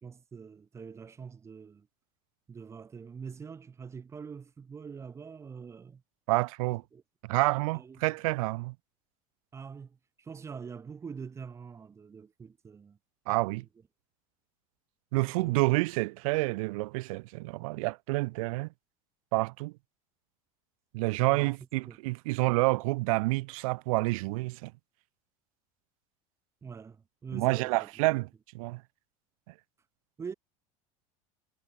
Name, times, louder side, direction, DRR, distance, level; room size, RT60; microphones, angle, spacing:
voice 1, 0.0-1.9 2.5-6.0 6.9-7.0 7.7-8.1 9.5-13.0 13.4-13.7 15.2-15.6 21.2-21.6 21.8-22.0 26.6-28.1 30.2-30.3, right 6 dB, 15° right, 1.5 m, -44 dB
voice 2, 6.3-6.8 7.2-8.7 13.3-13.6 15.1-18.7 19.3-19.7 20.9-24.7 27.3-28.3 28.5-28.8, right 24 dB, 75° right, 0.6 m, -28 dB
supercardioid pair, 165°, 18 cm